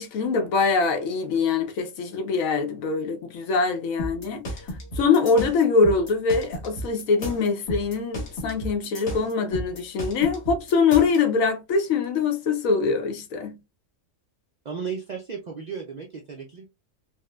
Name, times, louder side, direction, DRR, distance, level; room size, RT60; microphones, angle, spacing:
voice 1, 0.0-4.4 5.0-13.6, left 4 dB, 90° left, 1.1 m, -23 dB
sound 1, 4.0-11.2, equal, 60° left, 1.3 m, -33 dB
voice 2, 14.6-16.6, right 6 dB, 70° right, 0.4 m, -34 dB
4.4 x 2.1 x 2.2 m
omnidirectional pair, 1.4 m